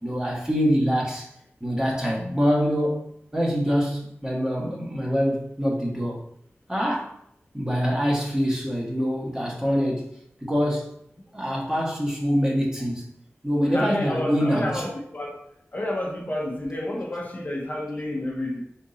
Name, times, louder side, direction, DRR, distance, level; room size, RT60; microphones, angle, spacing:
voice 1, 0.0-1.3 1.6-3.0 3.3-6.2 6.7-7.1 7.5-10.0 10.4-10.9 11.3-13.0 13.4-14.8, equal, 15° right, -4 dB, 1.3 m, -24 dB
voice 2, 13.6-15.4 15.7-18.6, left 1 dB, 40° left, -2 dB, 0.8 m, -30 dB
4.4 x 3.7 x 2.7 m, 0.72 s
wide cardioid pair, 70°, 5 cm